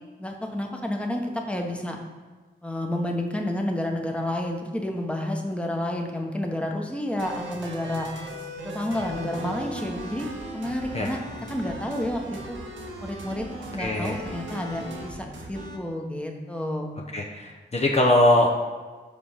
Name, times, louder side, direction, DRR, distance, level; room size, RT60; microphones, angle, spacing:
voice 1, 0.2-2.0 2.6-8.1 8.6-10.3 10.5-11.2 11.5-12.6 13.0-13.4 13.7-17.0, left 1 dB, 5° left, 2 dB, 1.0 m, -30 dB
sound 1, 7.2-15.8, right 1 dB, 90° right, 1.0 m, -37 dB
voice 2, 13.8-14.2 17.1-18.5, left 1 dB, 35° left, -1 dB, 0.7 m, -21 dB
5.2 x 5.0 x 5.5 m, 1.4 s
cardioid pair, 55°, 19 cm